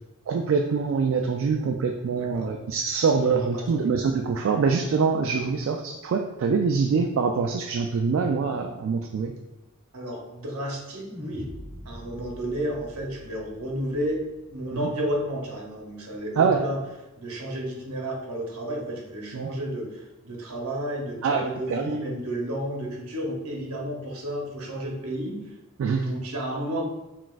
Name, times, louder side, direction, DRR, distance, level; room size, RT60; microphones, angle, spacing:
voice 1, 0.3-9.3 14.7-14.9 16.4-16.6 19.3-19.5 21.2-22.0 25.8-26.1, right 5 dB, 60° right, 3 dB, 0.3 m, -24 dB
voice 2, 2.1-2.5 3.2-3.8 9.9-11.5 11.8-16.8 17.2-25.5 26.0-26.8, right 1 dB, 75° right, 0 dB, 0.9 m, -32 dB
sound 1, 11.1-15.4, equal, 10° left, 0.5 m, -44 dB
5.8 x 2.4 x 2.4 m, 1.0 s
head